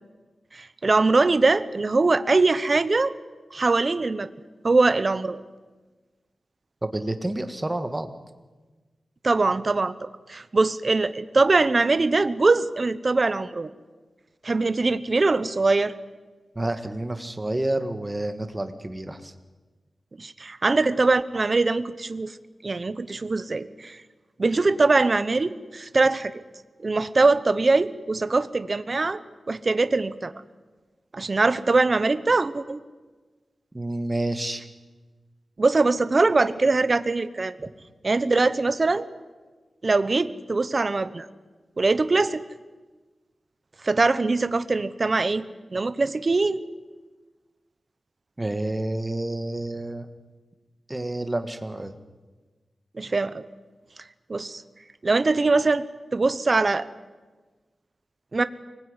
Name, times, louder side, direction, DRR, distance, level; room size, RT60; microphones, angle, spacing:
voice 1, 0.5-3.1 3.5-4.3 4.6-5.4 9.2-13.7 14.4-15.9 20.2-22.3 22.6-24.0 24.4-26.4 26.8-29.2 29.5-30.3 31.1-32.8 35.6-37.6 38.0-39.1 39.8-41.3 41.8-42.4 43.8-45.4 45.7-46.6 52.9-53.4 54.3-54.6 55.0-55.8 56.1-56.9 58.3-58.4, right 3 dB, 35° right, 13 dB, 0.9 m, -22 dB
voice 2, 6.8-8.1 16.6-19.3 33.7-34.6 48.4-50.1 50.9-52.0, right 1 dB, 15° right, 8 dB, 1.8 m, -29 dB
24.5 x 20.0 x 9.8 m, 1.3 s
wide cardioid pair, 140°, 0 cm